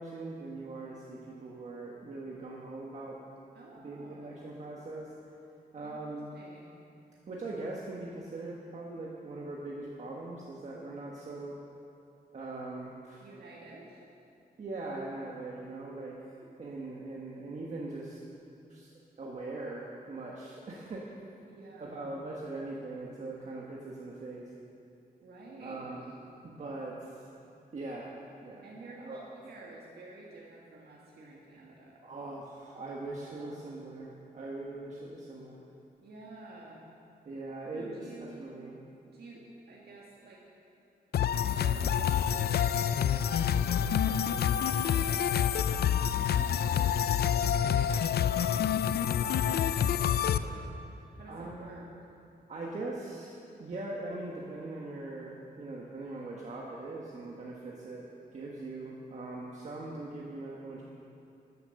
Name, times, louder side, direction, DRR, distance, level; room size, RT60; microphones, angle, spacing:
voice 1, 0.0-3.2 3.8-5.1 5.7-6.3 7.3-11.6 12.3-13.3 14.6-16.1 16.6-18.2 18.7-18.9 19.2-21.1 21.8-24.5 25.6-26.2 26.4-27.3 27.7-28.1 28.4-29.3 32.0-35.6 37.2-38.8 51.3-51.8 52.5-60.8, right 2 dB, 45° right, -3 dB, 1.3 m, -41 dB
voice 2, 3.5-4.5 5.8-6.8 13.2-14.0 21.5-22.2 25.2-25.8 28.6-32.0 33.3-33.8 36.0-36.9 37.7-38.5 39.1-40.4 41.3-42.8 43.2-45.3 45.6-50.7 51.1-51.9, right 2 dB, 90° right, -4 dB, 1.7 m, -50 dB
sound 1, 41.1-50.4, left 9 dB, 85° left, 0.4 m, -27 dB
13.0 x 10.5 x 6.5 m, 2.7 s
wide cardioid pair, 165°, 16 cm